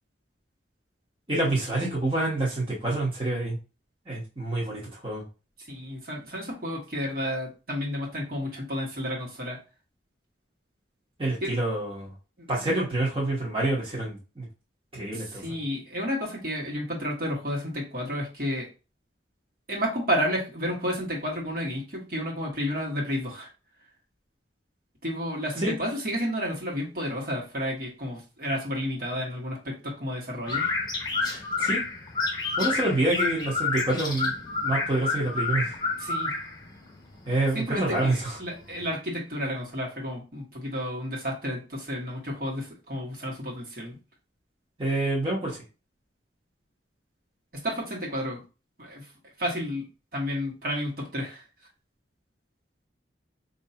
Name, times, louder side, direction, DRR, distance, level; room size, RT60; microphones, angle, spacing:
voice 1, 1.3-3.6 4.1-5.2 11.2-12.1 12.5-14.5 14.9-15.4 25.6-25.8 31.2-31.8 32.6-34.3 34.6-35.7 37.2-38.4 44.8-45.5, right 2 dB, 30° right, -6 dB, 1.2 m, -27 dB
voice 2, 5.7-9.6 11.4-11.5 12.4-12.8 15.1-18.7 19.7-23.5 25.0-30.7 36.0-36.3 37.5-44.0 47.6-48.4 48.8-49.1 49.4-51.4, equal, 55° right, -3 dB, 1.5 m, -31 dB
sound 1, 30.4-38.9, left 3 dB, 25° left, 1.1 m, -30 dB
4.5 x 2.8 x 2.8 m, 0.32 s
head